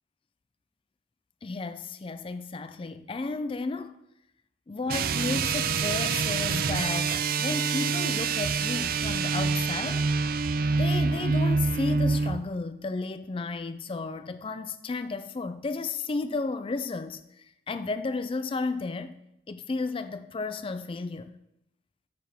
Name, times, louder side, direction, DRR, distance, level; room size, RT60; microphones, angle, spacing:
voice 1, 1.4-4.0 4.7-10.1 10.8-17.2 17.7-19.2 19.5-21.4, left 3 dB, 30° left, 0.4 m, -33 dB
sound 1, 4.9-12.4, right 4 dB, 50° right, 0.4 m, -26 dB
13.0 x 5.8 x 3.5 m
head